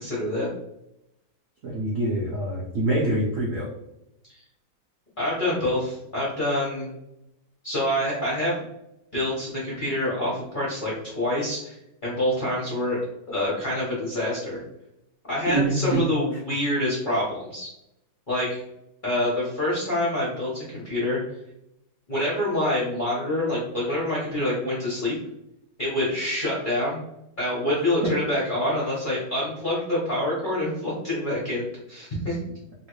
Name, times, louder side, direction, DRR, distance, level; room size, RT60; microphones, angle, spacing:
voice 1, 0.0-0.5 4.3-4.4 5.2-6.9 7.6-8.6 9.1-11.8 12.0-13.0 13.3-14.6 15.3-17.7 18.3-18.6 19.0-21.2 22.1-25.2 25.8-27.0 27.4-31.6 31.9-32.4, left 1 dB, 40° left, -7 dB, 0.7 m, -26 dB
voice 2, 1.6-3.7 15.5-16.0, right 2 dB, 70° right, -4 dB, 0.7 m, -25 dB
3.1 x 2.6 x 3.0 m, 0.84 s
omnidirectional pair, 2.2 m